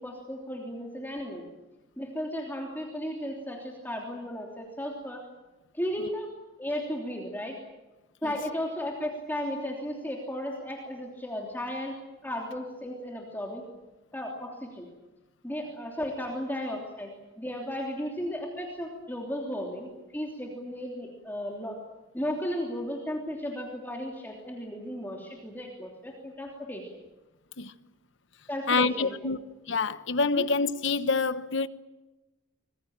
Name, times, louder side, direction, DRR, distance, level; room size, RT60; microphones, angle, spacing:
voice 1, 0.0-1.4 2.0-5.2 5.7-6.3 6.6-7.6 8.2-12.0 12.2-13.6 14.1-14.9 15.4-17.1 17.4-21.8 22.1-26.9 28.5-29.1 30.3-30.5, equal, 10° left, 3.1 m, -35 dB
voice 2, 28.7-29.4 29.7-31.7, left 4 dB, 60° left, 1.1 m, -26 dB
25.5 x 21.0 x 8.8 m
head